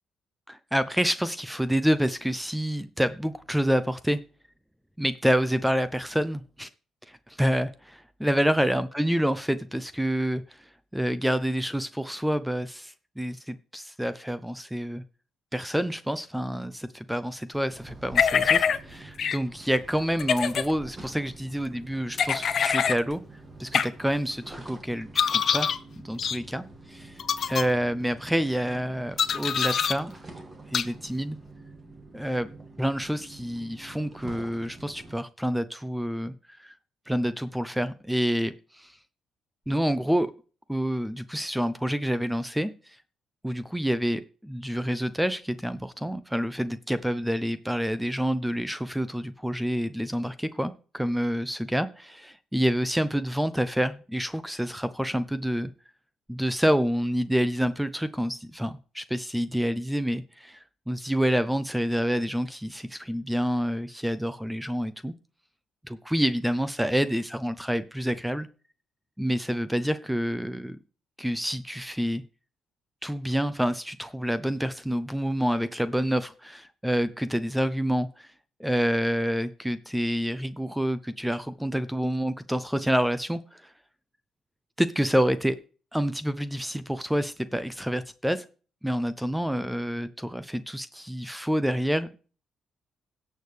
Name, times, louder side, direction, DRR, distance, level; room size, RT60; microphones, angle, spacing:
voice 1, 0.5-4.2 5.0-6.7 7.1-10.6 10.9-15.0 15.5-23.2 23.6-25.7 26.0-27.2 27.5-30.1 30.7-31.4 32.1-32.5 32.8-36.3 36.6-36.7 37.1-38.9 39.7-40.3 40.7-42.7 43.4-55.7 56.3-65.1 65.8-68.5 69.2-70.8 71.2-72.2 73.0-78.3 78.6-83.7 84.8-85.6 85.9-88.4 88.8-92.2, equal, 5° right, 13 dB, 0.6 m, -28 dB
sound 1, 17.7-35.1, right 2 dB, 25° right, 2.3 m, -47 dB
sound 2, 18.1-18.8 19.2-19.4 20.2-20.7 22.2-23.0 23.7-23.9 25.1-25.8 26.2-26.4 27.2-27.6 29.2-29.9 30.7-30.8, left 7 dB, 55° left, 0.9 m, -24 dB
17.0 x 6.6 x 3.4 m, 0.38 s
cardioid pair, 90°, 0 cm